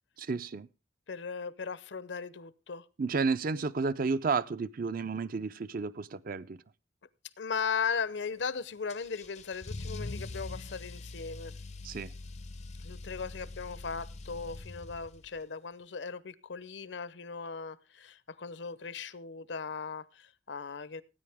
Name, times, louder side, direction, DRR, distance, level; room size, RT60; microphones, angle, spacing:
voice 1, 0.2-0.7 3.0-6.6 11.8-12.1, right 4 dB, 50° right, 0.5 m, -31 dB
voice 2, 1.1-2.8 7.4-11.5 12.8-21.0, left 5 dB, 75° left, 0.8 m, -37 dB
Car / Engine starting / Accelerating revving vroom, 8.9-15.4, left 2 dB, 40° left, 0.5 m, -43 dB
18.0 x 9.3 x 3.5 m
head